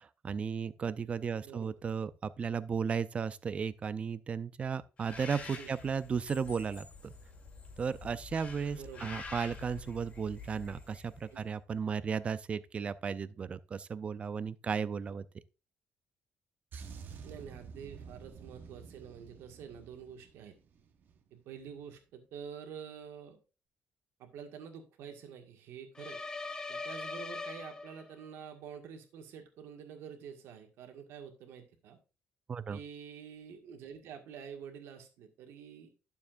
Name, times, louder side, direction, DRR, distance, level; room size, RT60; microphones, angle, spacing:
voice 1, 0.0-7.1 7.8-15.3 32.5-32.8, right 6 dB, 30° right, 0.5 m, -35 dB
Bird, 5.0-11.4, left 4 dB, 35° left, 1.8 m, -48 dB
voice 2, 8.7-9.2 11.3-11.4 17.2-20.6 21.3-23.4 24.2-26.2 26.7-32.0 32.7-36.0, right 7 dB, 90° right, 1.8 m, -48 dB
sound 1, 16.7-21.3 21.5-21.8, right 6 dB, 55° right, 1.1 m, -50 dB
sound 2, 26.0-28.3, left 3 dB, 20° left, 0.6 m, -41 dB
12.0 x 7.1 x 2.5 m
cardioid pair, 145°, 4 cm